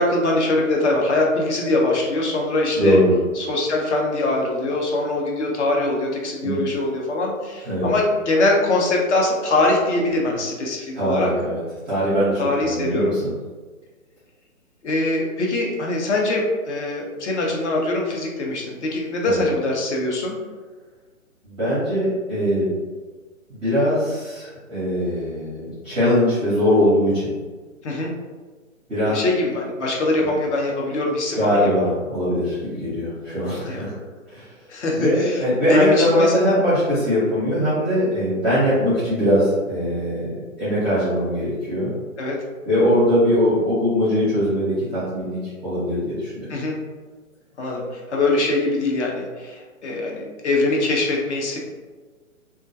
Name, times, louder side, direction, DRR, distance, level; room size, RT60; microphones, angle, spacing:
voice 1, 0.0-3.0 3.4-11.3 12.4-13.2 14.8-20.4 27.8-28.1 29.1-31.7 33.7-33.9 34.7-36.6 42.2-42.4 46.5-46.8 47.6-51.6, left 2 dB, 55° left, -1 dB, 0.6 m, -22 dB
voice 2, 2.8-3.1 6.4-6.6 7.6-7.9 10.9-11.6 11.9-13.3 19.2-19.5 21.4-22.7 23.5-27.3 28.9-29.2 31.3-33.9 34.3-34.5 34.9-42.0 42.7-45.4 45.6-46.5, equal, 10° right, -11 dB, 0.5 m, -21 dB
2.3 x 2.2 x 2.6 m, 1.4 s
hypercardioid pair, 140°, 41 cm